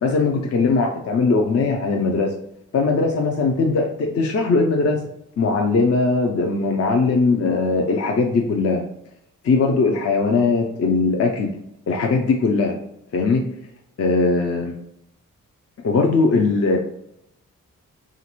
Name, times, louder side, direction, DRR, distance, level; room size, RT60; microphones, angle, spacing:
voice 1, 0.0-2.3 2.7-5.0 5.4-8.8 9.4-11.5 11.9-12.8 13.1-13.4 14.0-14.7 15.8-16.8, left 3 dB, 45° left, 2 dB, 0.5 m, -20 dB
3.2 x 2.5 x 2.9 m, 0.75 s
cardioid pair, 55°, 33 cm